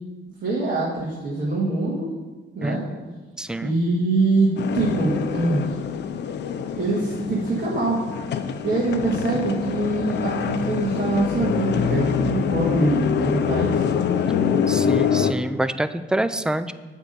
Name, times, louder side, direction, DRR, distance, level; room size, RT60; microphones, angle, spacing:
voice 1, 0.4-2.1 2.6-2.8 3.6-5.8 6.8-8.0 8.6-13.9, right 2 dB, 45° right, -8 dB, 1.9 m, -24 dB
voice 2, 2.6-3.7 14.7-16.7, right 1 dB, 5° right, 13 dB, 0.3 m, -27 dB
sound 1, 4.6-15.3, left 7 dB, 60° left, 0.6 m, -25 dB
8.2 x 3.7 x 6.7 m, 1.3 s
cardioid pair, 90°, 20 cm